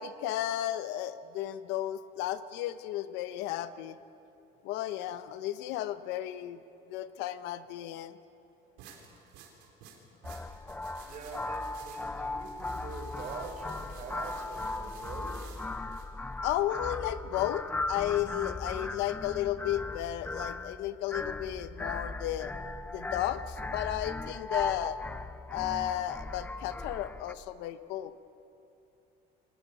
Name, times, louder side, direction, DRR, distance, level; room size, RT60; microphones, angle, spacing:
voice 1, 0.0-4.0 4.6-6.6 6.9-8.2 16.4-22.5 22.9-25.0 25.5-28.1, left 12 dB, 85° left, 12 dB, 1.0 m, -33 dB
sound 1, 8.8-16.1, right 7 dB, 85° right, 4.1 m, -54 dB
sound 2, 10.2-27.3, left 2 dB, 10° left, 0.6 m, -38 dB
voice 2, 11.0-15.4 25.4-25.6, right 4 dB, 45° right, 3 dB, 5.2 m, -44 dB
23.5 x 19.0 x 8.6 m, 2.8 s
cardioid pair, 135°, 18 cm